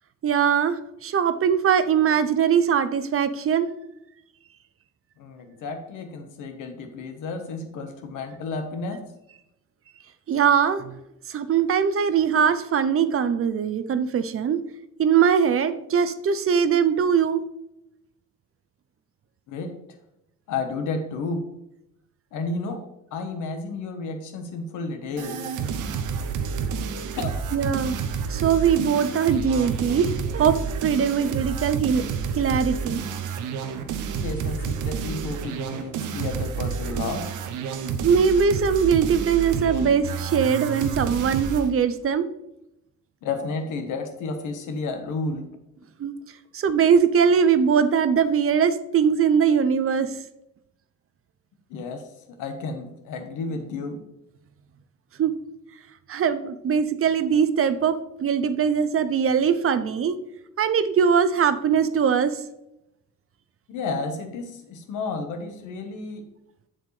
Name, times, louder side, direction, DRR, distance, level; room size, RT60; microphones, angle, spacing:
voice 1, 0.2-3.7 10.3-11.0 11.3-14.6 15.0-17.4 27.5-28.0 28.3-32.1 32.4-33.0 38.0-42.3 46.0-46.1 46.5-50.1 55.2-55.3 56.1-60.2 60.6-62.4, right 7 dB, 45° right, 12 dB, 0.6 m, -21 dB
voice 2, 5.2-9.0 19.5-19.7 20.5-21.4 22.3-22.9 23.1-25.4 27.2-27.3 34.2-37.3 43.2-45.5 51.7-54.0 63.7-66.3, left 3 dB, 85° left, 6 dB, 1.2 m, -32 dB
sound 1, 25.2-41.7, right 6 dB, 85° right, 0.8 m, -29 dB
7.6 x 7.2 x 3.2 m, 0.86 s
cardioid pair, 90°, 30 cm